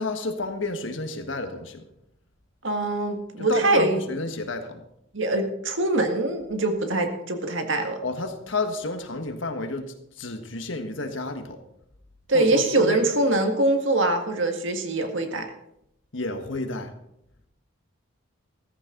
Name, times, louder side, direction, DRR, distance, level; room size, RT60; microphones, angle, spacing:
voice 1, 0.0-1.8 3.4-4.8 8.0-11.6 12.3-13.0 16.1-16.9, left 2 dB, 70° left, 6 dB, 1.6 m, -30 dB
voice 2, 2.6-4.0 5.1-8.0 12.3-15.5, right 2 dB, 70° right, 5 dB, 1.8 m, -23 dB
14.5 x 14.0 x 3.9 m, 0.80 s
head